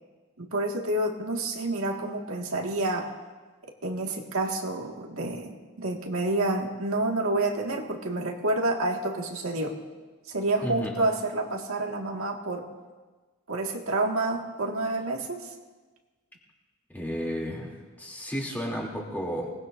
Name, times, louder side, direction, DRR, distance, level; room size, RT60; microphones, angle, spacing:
voice 1, 0.4-3.1 3.8-9.8 10.3-12.7 13.5-15.5, right 2 dB, 75° right, 0 dB, 1.9 m, -29 dB
voice 2, 10.6-11.0 16.9-17.7 18.0-19.5, equal, 10° left, -2 dB, 2.9 m, -32 dB
26.0 x 19.0 x 2.6 m, 1.3 s
head